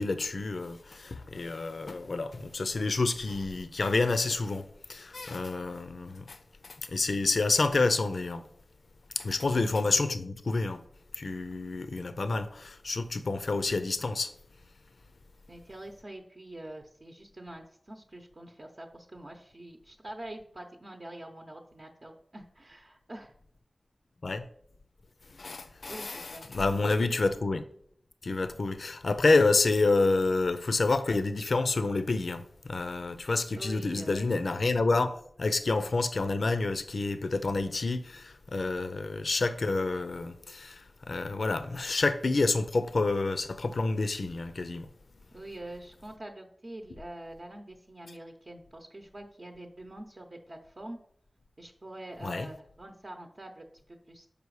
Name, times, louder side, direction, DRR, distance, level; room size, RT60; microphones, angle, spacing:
voice 1, 0.0-6.4 6.6-8.4 9.2-10.8 11.1-14.3 24.2-24.4 25.3-27.6 28.2-44.9 52.2-52.5, left 3 dB, 75° left, 0.5 m, -28 dB
voice 2, 15.5-23.3 25.9-26.5 33.5-34.3 45.3-51.0 51.6-54.3, right 1 dB, 45° right, 0.8 m, -45 dB
6.8 x 5.0 x 4.7 m
wide cardioid pair, 65°, 0 cm